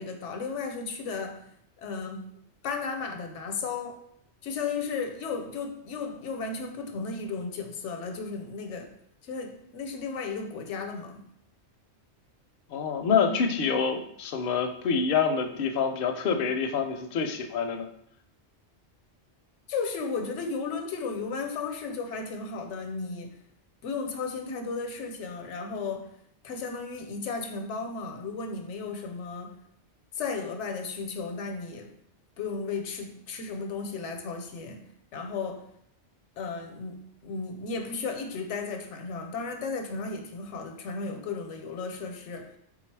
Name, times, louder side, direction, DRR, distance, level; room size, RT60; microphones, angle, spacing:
voice 1, 0.0-1.5 1.8-2.3 2.6-4.0 4.4-9.0 9.2-11.2 19.7-23.4 23.8-26.1 26.4-29.6 30.1-32.0 32.4-34.8 35.1-35.7 36.4-42.6, left 4 dB, 85° left, 0.9 m, -34 dB
voice 2, 12.7-17.9, left 6 dB, 60° left, 0.6 m, -26 dB
3.6 x 2.3 x 4.5 m
omnidirectional pair, 1.2 m